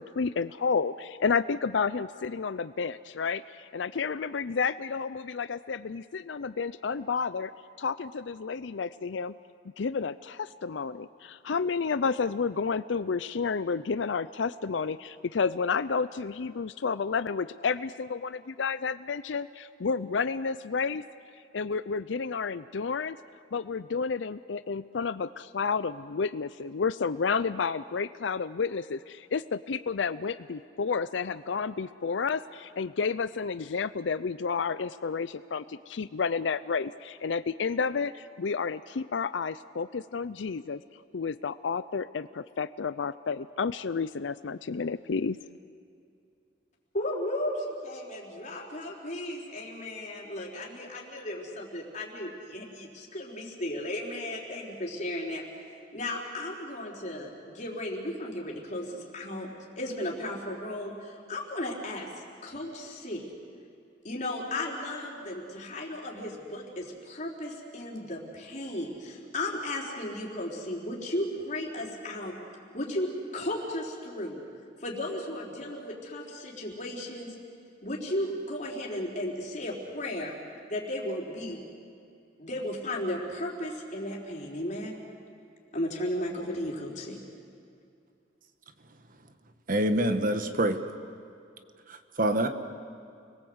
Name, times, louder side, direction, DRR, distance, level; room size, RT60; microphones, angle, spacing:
voice 1, 0.0-3.4 3.7-7.5 7.8-9.3 9.8-21.0 21.5-23.2 23.5-40.8 41.1-45.4, left 5 dB, 85° left, 14 dB, 0.5 m, -31 dB
voice 2, 46.9-55.5 55.9-59.5 59.8-62.1 62.4-63.3 64.0-72.3 72.7-74.4 74.8-77.3 77.8-80.3 80.7-81.6 82.4-85.0 85.7-87.2, left 1 dB, 45° left, -2 dB, 4.6 m, -35 dB
voice 3, 89.7-90.8 91.9-92.5, right 1 dB, 50° right, 8 dB, 1.4 m, -26 dB
30.0 x 21.5 x 8.1 m, 2.5 s
head